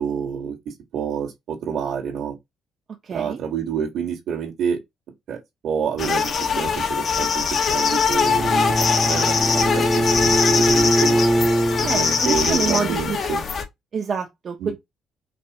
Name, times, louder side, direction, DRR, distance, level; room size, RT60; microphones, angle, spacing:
voice 1, 0.0-2.3 3.1-4.8 5.3-11.2 11.8-13.4 14.6-14.7, right 7 dB, 70° right, 2.0 m, -28 dB
voice 2, 3.0-3.4 11.8-13.2 13.9-14.7, right 5 dB, 50° right, 1.0 m, -27 dB
sound 1, 6.0-13.6, left 6 dB, 55° left, 1.2 m, -22 dB
Bowed string instrument, 8.2-12.3, right 1 dB, 10° right, 0.8 m, -22 dB
5.3 x 2.8 x 3.0 m
cardioid pair, 90°, 0 cm